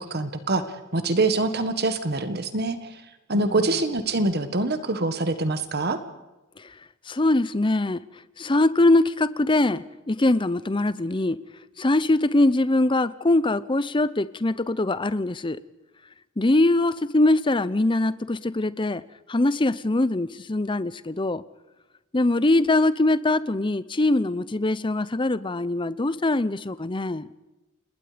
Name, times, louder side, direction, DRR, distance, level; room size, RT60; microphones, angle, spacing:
voice 1, 0.1-0.6 0.9-2.8 3.3-6.0, right 2 dB, 50° right, 10 dB, 1.6 m, -24 dB
voice 2, 3.3-3.7 7.1-8.0 8.4-11.4 11.8-15.6 16.4-19.0 19.3-21.4 22.1-27.3, left 2 dB, 25° left, 16 dB, 0.7 m, -22 dB
28.5 x 20.5 x 5.1 m, 1.0 s
head